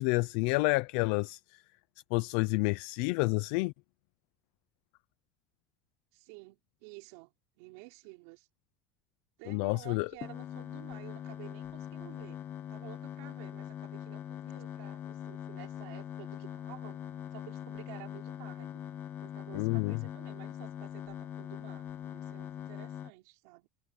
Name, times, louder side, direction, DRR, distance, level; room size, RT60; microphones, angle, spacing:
voice 1, 0.0-1.6 2.1-3.7 9.5-10.1 19.5-20.0, left 25 dB, 60° left, 0.5 m, -29 dB
voice 2, 6.1-8.5 9.4-12.4 12.7-17.0 17.3-18.8 19.2-23.7, right 26 dB, 70° right, 4.4 m, -52 dB
sound 1, 10.2-23.1, left 10 dB, 30° left, 1.3 m, -42 dB
cardioid pair, 180°, 7 cm